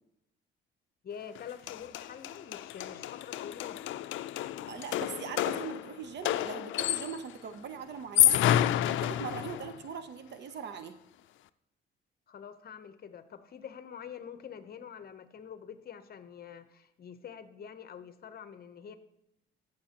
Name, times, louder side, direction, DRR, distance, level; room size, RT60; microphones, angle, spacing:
voice 1, 1.0-3.9 12.3-19.0, left 8 dB, 50° left, 11 dB, 0.8 m, -46 dB
sound 1, 1.3-1.4 1.7-7.3 8.0-9.8, left 12 dB, 75° left, 0.4 m, -29 dB
voice 2, 4.7-8.5 8.9-11.0, right 7 dB, 60° right, 10 dB, 0.8 m, -41 dB
14.0 x 6.6 x 2.9 m, 0.80 s
cardioid pair, 90°, 20 cm